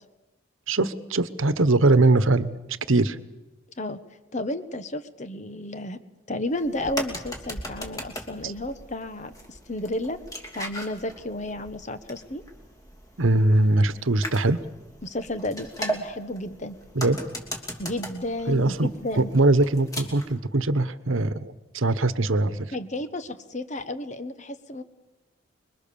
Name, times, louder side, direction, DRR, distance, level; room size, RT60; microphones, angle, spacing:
voice 1, 0.7-2.5 2.9-3.2 8.4-8.5 13.2-14.6 16.9-17.2 18.5-18.9 19.2-22.7, right 2 dB, 75° right, 14 dB, 1.2 m, -21 dB
voice 2, 4.3-6.0 6.3-10.2 10.5-12.4 15.0-16.8 17.8-19.3 22.7-24.8, left 1 dB, 35° left, 11 dB, 1.2 m, -32 dB
sound 1, 6.5-20.4, equal, 15° left, 2.9 m, -38 dB
26.0 x 22.5 x 7.0 m, 1.0 s
head